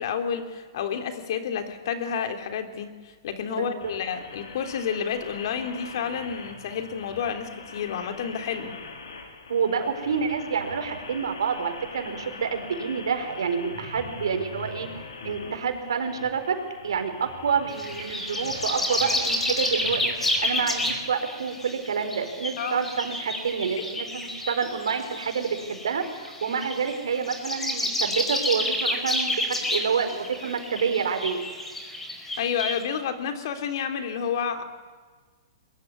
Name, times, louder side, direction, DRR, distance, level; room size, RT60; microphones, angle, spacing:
voice 1, 0.0-8.7 22.6-22.8 23.8-23.9 32.4-34.6, left 7 dB, 60° left, 7 dB, 3.4 m, -30 dB
voice 2, 3.5-3.9 9.5-14.9 15.2-16.6 16.8-31.4, right 6 dB, 80° right, 7 dB, 4.5 m, -28 dB
sound 1, 3.8-20.9, left 3 dB, 85° left, 4.6 m, -42 dB
sound 2, 17.7-32.8, left 1 dB, 10° left, 4.6 m, -30 dB
22.5 x 22.0 x 9.8 m, 1.5 s
hypercardioid pair, 130°, 3 cm